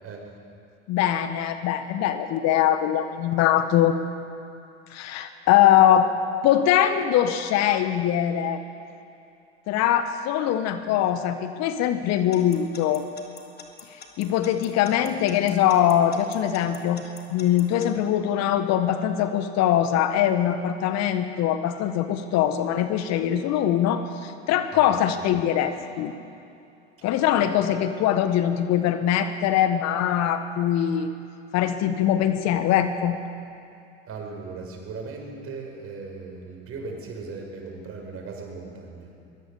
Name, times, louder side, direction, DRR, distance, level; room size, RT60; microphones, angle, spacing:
voice 1, 0.9-4.0 4.9-6.1 6.4-8.6 9.7-13.0 14.2-17.0 17.3-26.1 27.0-31.1 31.5-33.2, left 10 dB, 50° left, 10 dB, 1.5 m, -22 dB
Alarm / Clock, 12.3-17.9, left 6 dB, 30° left, 3.4 m, -44 dB
voice 2, 34.1-39.1, right 4 dB, 40° right, 1 dB, 6.5 m, -38 dB
21.5 x 21.5 x 7.2 m, 2.6 s
figure-of-eight pair, 70°, 34 cm